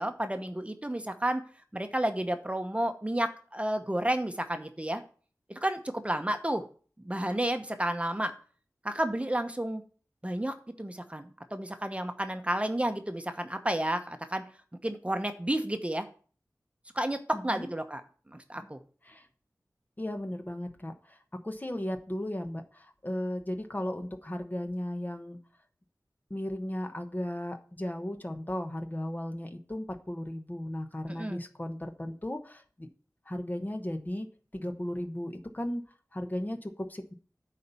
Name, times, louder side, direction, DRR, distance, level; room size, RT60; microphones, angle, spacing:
voice 1, 0.0-1.4 1.7-5.0 5.6-6.6 7.0-8.3 8.8-9.8 10.2-14.4 14.8-16.1 16.9-18.0 18.3-18.8 31.1-31.4, right 1 dB, 20° right, 7 dB, 0.9 m, -31 dB
voice 2, 17.3-17.7 19.0-19.3 20.0-21.2 21.4-25.4 26.3-32.9 33.3-34.3 34.5-35.8 36.1-37.1, left 1 dB, 25° left, 6 dB, 1.0 m, -36 dB
9.4 x 4.2 x 6.9 m, 0.42 s
wide cardioid pair, 55°, 6 cm